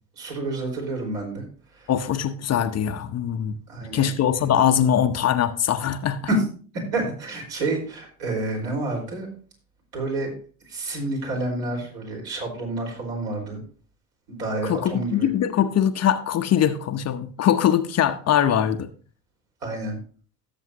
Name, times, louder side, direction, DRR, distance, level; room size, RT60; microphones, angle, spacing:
voice 1, 0.2-1.4 1.7-1.9 3.7-4.1 6.3-6.4 6.7-9.3 9.9-10.3 10.7-13.6 14.3-15.3 19.6-20.0, right 2 dB, 60° right, -1 dB, 4.7 m, -29 dB
voice 2, 1.9-3.6 3.9-6.2 14.6-18.9, left 9 dB, 35° left, 8 dB, 0.8 m, -22 dB
16.5 x 7.3 x 2.8 m, 0.41 s
figure-of-eight pair, 65°, 46 cm